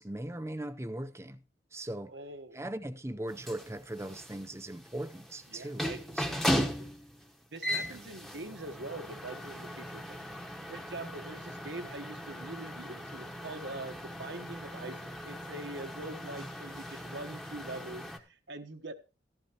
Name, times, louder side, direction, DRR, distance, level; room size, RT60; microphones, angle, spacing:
voice 1, 0.0-1.4 1.7-2.1 2.5-5.9 6.1-6.5 7.7-8.0, right 1 dB, 15° right, 0.7 m, -39 dB
voice 2, 2.1-2.6 5.5-6.9 7.5-10.2 10.7-18.9, right 2 dB, 70° right, 1.2 m, -44 dB
sound 1, 3.3-18.2, equal, ahead, 1.1 m, -38 dB
14.5 x 12.0 x 2.9 m
head